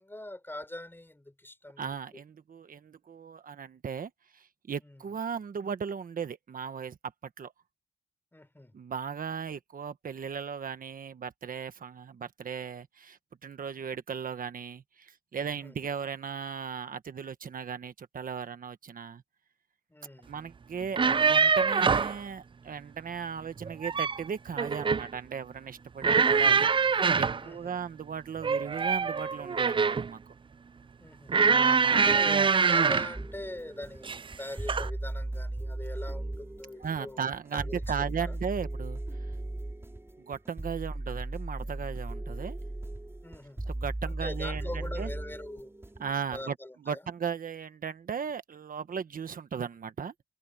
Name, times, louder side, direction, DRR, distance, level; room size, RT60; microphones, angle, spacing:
voice 1, 0.0-2.2 4.8-5.0 8.3-8.7 15.4-15.8 19.9-20.3 27.4-27.8 31.0-31.3 31.9-37.2 37.5-38.3 40.9-41.1 43.2-43.7 44.0-45.7 46.3-47.1, left 1 dB, 15° left, 5.0 m, -42 dB
voice 2, 1.8-7.0 7.4-7.5 8.7-19.2 20.3-30.3 31.4-32.5 36.8-39.0 40.2-42.6 43.6-45.1 46.0-46.6 46.8-50.1, right 6 dB, 75° right, 1.3 m, -37 dB
sound 1, 20.8-22.2 23.6-24.2 24.6-25.1 26.0-27.4 28.4-30.1 31.3-33.2 34.0-34.3 34.7-34.9, right 5 dB, 35° right, 0.4 m, -24 dB
sound 2, 33.1-46.4, right 1 dB, 15° right, 3.9 m, -37 dB
wide cardioid pair, 105°, 15 cm